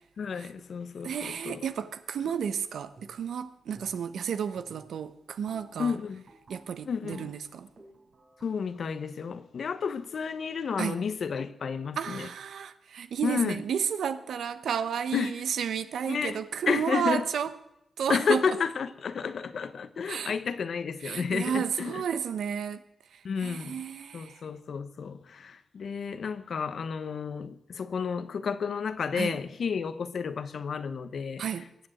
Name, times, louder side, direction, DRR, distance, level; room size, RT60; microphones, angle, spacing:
voice 1, 0.2-1.6 5.8-6.2 6.9-7.3 8.4-12.3 13.2-13.6 15.1-15.4 16.1-16.4 16.7-17.3 18.1-22.0 23.2-23.8 24.1-31.4, left 6 dB, 70° left, 1.0 m, -31 dB
voice 2, 1.0-6.0 6.5-7.7 10.8-11.0 12.0-17.5 18.0-18.6 20.1-20.3 21.0-22.8 23.4-24.4 29.1-29.4 31.4-31.7, right 7 dB, 80° right, 0.9 m, -32 dB
sound 1, 3.0-3.4 3.7-4.2 4.5-10.4, right 2 dB, 65° right, 4.5 m, -56 dB
21.5 x 7.4 x 7.9 m
cardioid pair, 55°, 0 cm